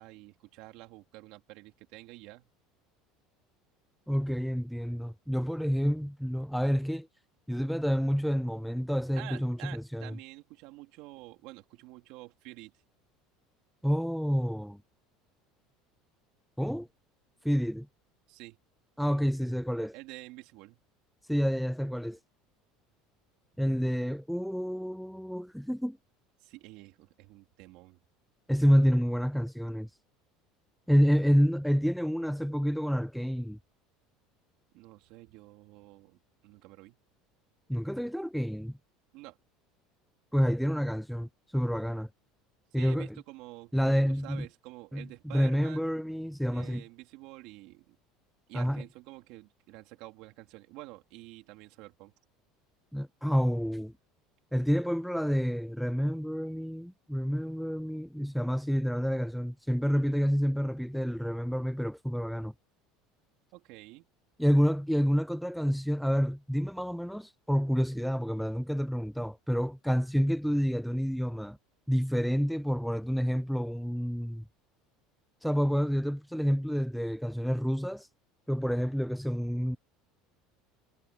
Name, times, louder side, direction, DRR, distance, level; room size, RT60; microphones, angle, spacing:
voice 1, 0.0-2.5 9.2-12.7 18.3-18.6 19.9-20.8 26.4-28.0 34.7-36.2 36.4-37.0 39.1-39.4 42.8-45.9 46.5-48.0 48.5-52.1 63.5-64.1, right 20 dB, 60° right, 3.7 m, -48 dB
voice 2, 4.1-7.1 7.5-10.1 13.8-14.8 16.6-16.9 17.4-17.9 19.0-19.9 21.3-22.2 23.6-26.0 28.5-29.9 30.9-33.6 37.7-38.8 40.3-42.1 42.7-43.2 43.7-44.5 44.9-46.8 48.5-48.8 52.9-53.9 54.5-62.5 64.4-71.6 71.9-74.4 75.4-78.1 78.5-79.8, equal, ahead, 0.3 m, -28 dB
cardioid pair, 155°, 0 cm